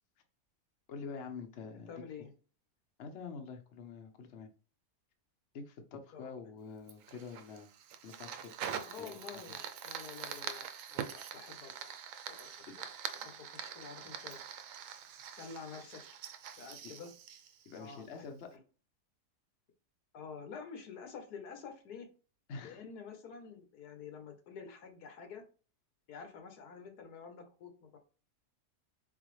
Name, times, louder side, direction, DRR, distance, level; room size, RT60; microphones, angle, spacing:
voice 1, 0.9-1.9 3.0-4.5 5.5-7.7 8.0-9.6 12.7-12.8 17.6-18.6 22.5-22.9, left 5 dB, 55° left, 1.0 m, -46 dB
voice 2, 1.7-2.3 6.1-6.3 8.9-14.4 15.4-16.0 16.6-17.1 17.8-18.0 18.5-18.6 20.1-22.1 22.6-25.4 26.1-28.0, left 6 dB, 85° left, 1.5 m, -49 dB
Fire, 6.9-18.3, right 8 dB, 70° right, 0.9 m, -44 dB
4.1 x 3.9 x 3.1 m
omnidirectional pair, 1.6 m